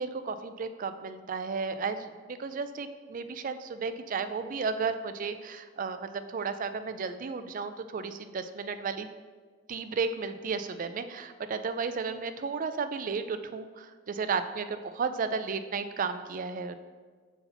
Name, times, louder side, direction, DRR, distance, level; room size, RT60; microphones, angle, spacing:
voice 1, 0.0-9.1 9.7-16.8, right 5 dB, 45° right, 10 dB, 0.4 m, -33 dB
5.7 x 4.1 x 5.7 m, 1.5 s
head